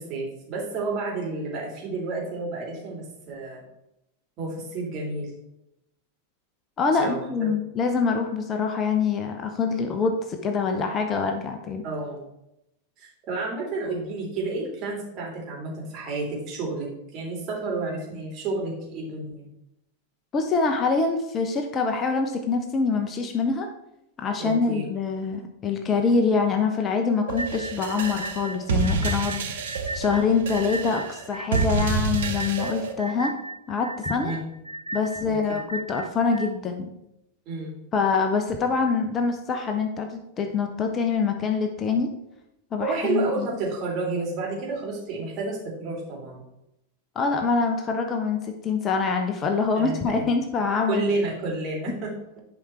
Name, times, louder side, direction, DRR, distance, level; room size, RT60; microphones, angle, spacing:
voice 1, 0.0-3.6 4.4-5.3 7.0-7.5 11.8-12.2 13.0-16.9 17.1-19.5 24.4-24.8 34.2-34.4 37.5-37.7 42.8-46.4 49.7-50.0 50.9-52.4, right 3 dB, 35° right, -3 dB, 3.5 m, -30 dB
voice 2, 6.8-11.8 20.3-23.7 24.2-29.4 29.9-33.4 33.7-34.3 34.9-36.9 37.9-42.1 42.7-43.5 47.1-51.0, left 4 dB, 25° left, 4 dB, 0.9 m, -25 dB
sound 1, 27.3-32.9, right 4 dB, 60° right, 1.1 m, -28 dB
sound 2, 27.4-36.5, right 2 dB, 90° left, 0.5 m, -36 dB
10.5 x 5.1 x 4.5 m, 0.84 s
figure-of-eight pair, 90°, 0 cm